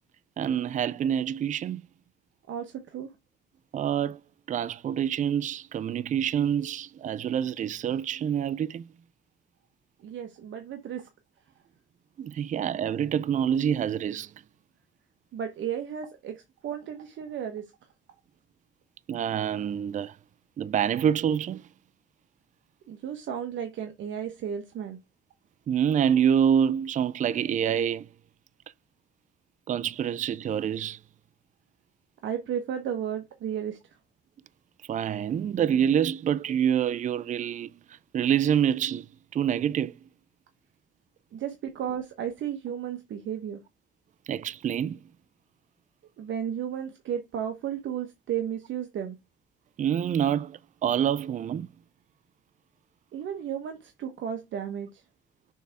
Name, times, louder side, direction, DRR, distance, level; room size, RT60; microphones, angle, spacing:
voice 1, 0.4-1.8 3.7-4.2 4.5-8.9 12.2-14.3 19.1-20.1 20.6-21.6 25.7-28.1 29.7-31.0 34.9-37.7 38.1-39.1 39.3-39.9 44.3-45.0 49.8-51.7, right 9 dB, 40° right, 0.4 m, -26 dB
voice 2, 2.5-3.1 10.0-11.1 15.3-17.7 22.9-25.0 32.2-33.8 41.3-43.6 46.2-49.2 53.1-55.0, right 9 dB, 75° right, 1.1 m, -34 dB
6.7 x 3.4 x 4.7 m
cardioid pair, 90°, 20 cm